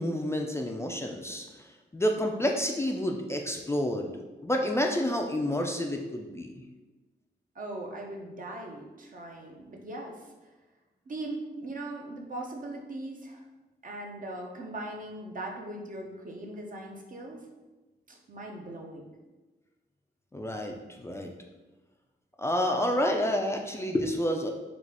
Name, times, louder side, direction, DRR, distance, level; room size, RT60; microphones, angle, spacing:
voice 1, 0.0-1.5 1.9-4.1 4.4-6.6 20.3-21.3 22.4-24.5, equal, 15° left, 1 dB, 0.4 m, -29 dB
voice 2, 7.5-10.2 11.1-13.4 13.8-17.4 18.1-19.0, right 2 dB, 50° right, 0 dB, 0.7 m, -39 dB
4.0 x 2.4 x 4.6 m, 1.2 s
wide cardioid pair, 120°, 18 cm